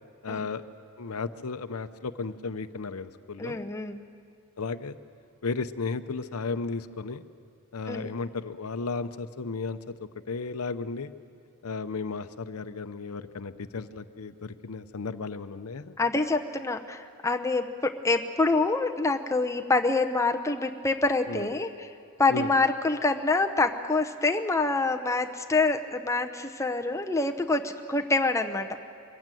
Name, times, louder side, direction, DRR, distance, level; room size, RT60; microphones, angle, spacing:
voice 1, 0.2-0.6 1.0-3.6 4.6-5.0 5.4-7.2 7.7-9.8 10.3-11.1 11.6-16.0 21.3-21.5 22.3-22.5, left 4 dB, 80° left, 12 dB, 0.7 m, -34 dB
voice 2, 3.4-4.0 7.9-8.1 16.0-21.9 22.2-28.8, left 3 dB, 15° left, 4 dB, 0.7 m, -26 dB
23.0 x 15.5 x 9.1 m, 2.3 s
head